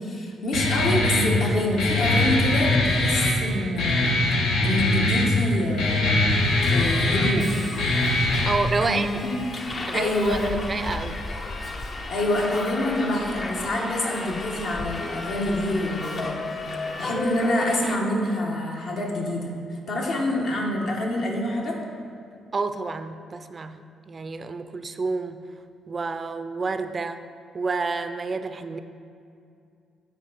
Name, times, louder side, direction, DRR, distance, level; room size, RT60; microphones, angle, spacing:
voice 1, 0.0-4.2 4.6-6.2 6.7-7.5 8.8-9.4 9.9-10.8 12.1-16.4 17.0-21.8, left 1 dB, 65° left, -1 dB, 1.2 m, -26 dB
Guitar, 0.5-8.5, left 2 dB, 85° left, 1.0 m, -22 dB
Subway metro underground, 6.3-18.0, left 2 dB, 40° left, 0.6 m, -34 dB
voice 2, 8.4-9.2 9.8-10.4 10.7-11.2 22.5-23.8 24.1-25.4 25.9-27.2 27.5-28.8, right 4 dB, 35° right, 9 dB, 0.3 m, -29 dB
9.0 x 4.7 x 4.1 m, 2.4 s
cardioid pair, 90°, 0 cm